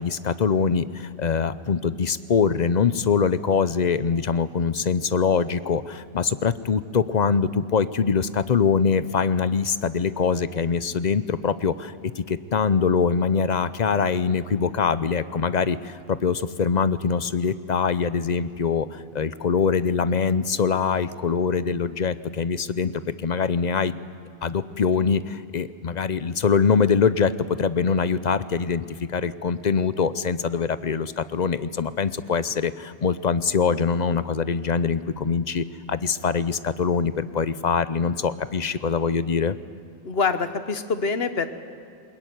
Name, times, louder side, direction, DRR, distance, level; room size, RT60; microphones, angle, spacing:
voice 1, 0.0-24.0 24.4-27.3 27.6-39.6, left 6 dB, 50° left, 14 dB, 0.7 m, -23 dB
voice 2, 40.0-41.5, left 4 dB, 70° left, 9 dB, 1.4 m, -25 dB
21.5 x 21.0 x 9.4 m, 2.4 s
omnidirectional pair, 1.1 m